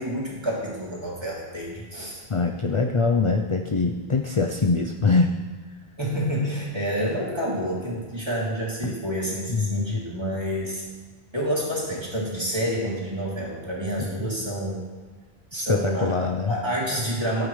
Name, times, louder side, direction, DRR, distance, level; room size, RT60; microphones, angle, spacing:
voice 1, 0.0-2.2 6.0-10.8 11.3-14.8 15.5-17.5, equal, 25° right, -5 dB, 3.0 m, -28 dB
voice 2, 2.3-5.3 8.8-8.9 9.5-10.0 14.2-14.3 15.5-16.5, left 4 dB, 35° left, 3 dB, 0.6 m, -23 dB
16.5 x 8.9 x 3.3 m, 1.4 s
omnidirectional pair, 1.1 m